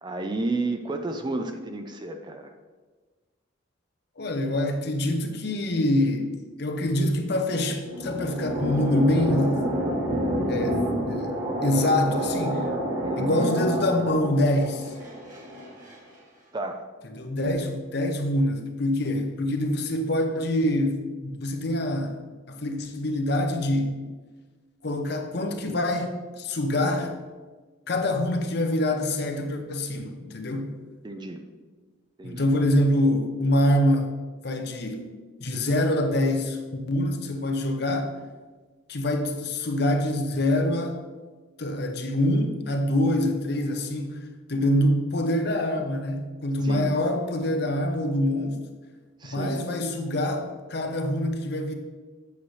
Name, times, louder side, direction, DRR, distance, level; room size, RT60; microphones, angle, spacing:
voice 1, 0.0-2.5 13.0-13.5 16.5-16.8 31.0-31.4 32.2-32.5 46.6-46.9 49.2-49.6, right 2 dB, 20° right, 0.4 m, -31 dB
voice 2, 4.2-9.6 10.5-10.8 11.1-12.7 13.2-14.9 17.2-22.1 22.5-23.9 24.8-27.1 27.9-30.7 32.2-34.1 34.4-35.1 35.4-38.1 38.9-41.0 41.6-44.2 44.5-48.6 49.3-51.7, left 1 dB, 50° left, 0.8 m, -25 dB
sound 1, 7.5-15.9, equal, 40° right, 1.7 m, -29 dB
8.5 x 7.0 x 3.2 m
head